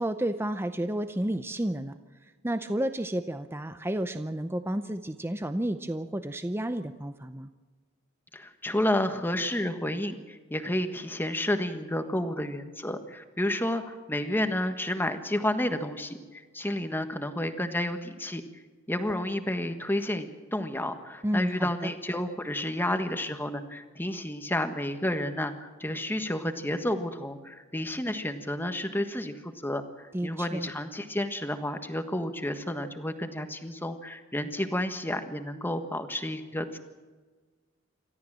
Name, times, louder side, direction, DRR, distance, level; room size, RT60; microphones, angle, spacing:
voice 1, 0.0-7.5 21.2-21.9 30.1-30.7, right 1 dB, 10° right, 10 dB, 0.6 m, -31 dB
voice 2, 8.3-18.6 18.9-36.8, left 1 dB, 10° left, 7 dB, 1.5 m, -31 dB
28.0 x 13.5 x 7.5 m, 1.4 s
head